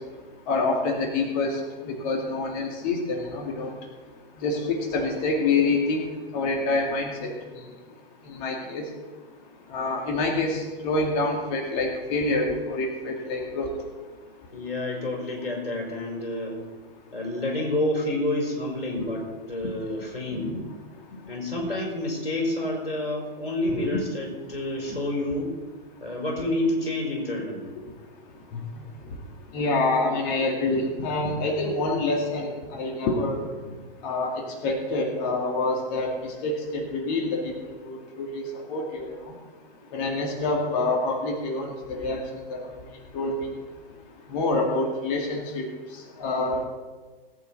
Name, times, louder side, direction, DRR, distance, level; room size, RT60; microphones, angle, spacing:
voice 1, 0.5-1.5 1.9-3.7 4.4-7.3 8.4-8.8 9.7-13.7 19.0-19.1 20.3-20.6 23.7-23.9 29.5-33.4 34.0-36.1 36.4-37.4 37.8-39.1 39.9-42.2 42.5-42.6 43.1-43.5 44.3-45.7 46.2-46.7, left 3 dB, 40° left, 1 dB, 2.3 m, -26 dB
voice 2, 14.5-16.6 17.1-20.5 21.3-25.5 26.0-27.7, left 1 dB, 75° left, -1 dB, 4.9 m, -29 dB
19.0 x 9.0 x 4.2 m, 1.3 s
figure-of-eight pair, 110°, 29 cm